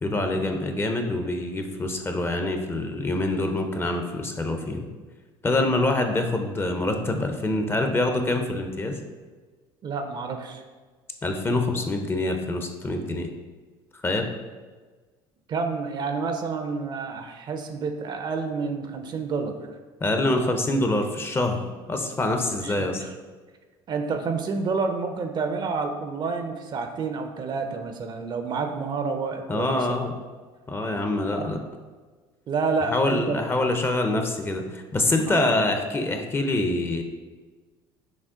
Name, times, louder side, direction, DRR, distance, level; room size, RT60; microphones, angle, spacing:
voice 1, 0.0-4.9 5.4-9.0 11.2-13.3 14.0-14.3 20.0-23.0 29.5-30.1 30.7-31.6 32.8-37.0, left 2 dB, 20° left, 5 dB, 0.5 m, -25 dB
voice 2, 9.8-10.6 15.5-19.6 22.6-23.1 23.9-30.0 31.2-31.5 32.5-33.4 35.3-35.5, right 4 dB, 40° right, 6 dB, 0.5 m, -29 dB
6.1 x 2.1 x 3.6 m, 1.4 s
supercardioid pair, 90°, 11 cm